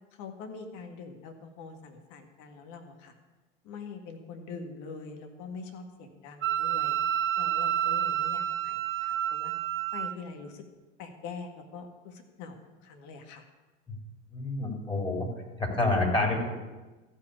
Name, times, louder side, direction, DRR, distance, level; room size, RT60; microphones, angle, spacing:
voice 1, 0.1-3.2 3.6-7.0 7.4-9.5 9.9-10.6 11.0-13.4, left 4 dB, 55° left, 5 dB, 2.0 m, -44 dB
Wind instrument woodwind instrument, 6.4-10.2, right 10 dB, 35° right, 1.0 m, -29 dB
voice 2, 14.3-15.3 15.6-16.5, left 2 dB, 15° left, 0 dB, 3.7 m, -28 dB
14.0 x 5.7 x 8.6 m, 1.2 s
hypercardioid pair, 85°, 36 cm